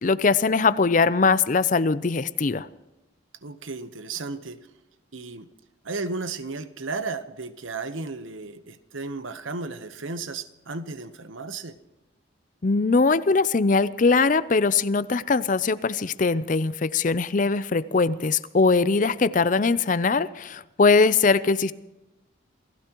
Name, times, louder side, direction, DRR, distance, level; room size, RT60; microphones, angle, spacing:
voice 1, 0.0-2.7 12.6-21.7, left 4 dB, 40° left, 0.5 m, -21 dB
voice 2, 3.4-4.7 5.1-5.5 5.8-11.8, right 3 dB, 80° right, 1.0 m, -34 dB
28.5 x 16.0 x 3.0 m
head